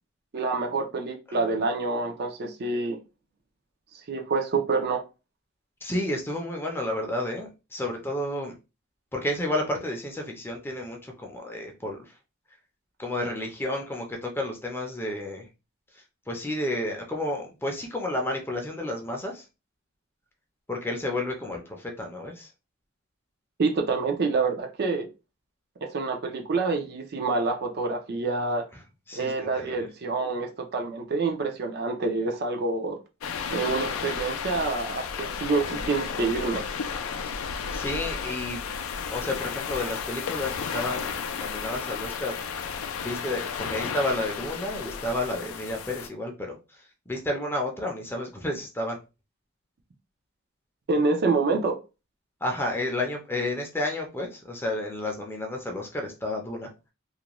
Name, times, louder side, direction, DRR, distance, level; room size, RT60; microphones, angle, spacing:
voice 1, 0.3-3.0 4.1-5.0 23.6-25.1 25.8-28.6 29.1-33.0 33.5-36.7 50.9-51.7, right 3 dB, 50° right, 0.4 m, -27 dB
voice 2, 5.8-8.5 9.1-12.1 13.0-15.5 16.3-19.4 20.7-22.5 29.1-29.9 37.2-38.6 39.1-42.5 43.0-49.0 52.4-56.7, left 1 dB, 10° left, 0.5 m, -31 dB
sound 1, 33.2-46.1, left 6 dB, 75° left, 0.4 m, -33 dB
2.4 x 2.1 x 2.9 m
head